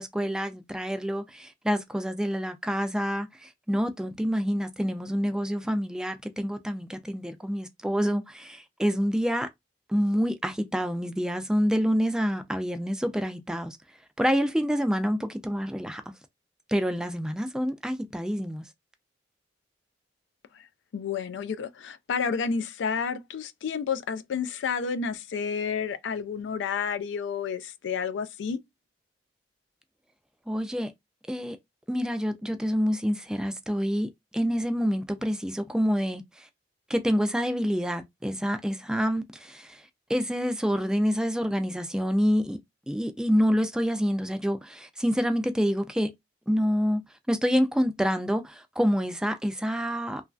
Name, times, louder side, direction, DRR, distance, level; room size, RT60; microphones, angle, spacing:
voice 1, 0.0-9.5 9.9-13.8 14.2-16.0 16.7-18.7 30.5-30.9 31.3-31.6 31.9-36.5 36.9-39.8 40.1-42.6 42.9-46.1 46.5-47.0 47.3-50.2, equal, 5° right, 0.3 m, -27 dB
voice 2, 20.9-28.6, left 6 dB, 85° left, 0.3 m, -30 dB
3.0 x 2.4 x 2.3 m
head